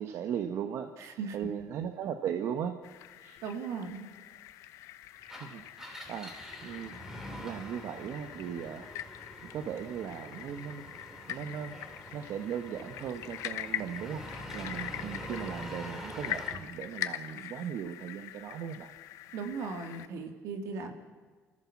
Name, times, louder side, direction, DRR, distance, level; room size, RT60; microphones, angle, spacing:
voice 1, 0.0-2.8 3.2-3.4 5.4-5.6 6.1-6.4 6.6-7.0 7.3-8.9 9.4-10.9 11.3-11.8 12.1-14.3 14.5-18.9, right 8 dB, 65° right, 7 dB, 1.2 m, -37 dB
voice 2, 1.0-1.4 3.4-4.1 19.3-20.9, right 5 dB, 80° right, 6 dB, 2.7 m, -37 dB
sound 1, 2.8-20.1, left 13 dB, 80° left, 1.0 m, -43 dB
Engine, 5.2-16.7, equal, 10° right, 3.3 m, -45 dB
29.5 x 14.5 x 7.3 m, 1.5 s
cardioid pair, 140°, 5 cm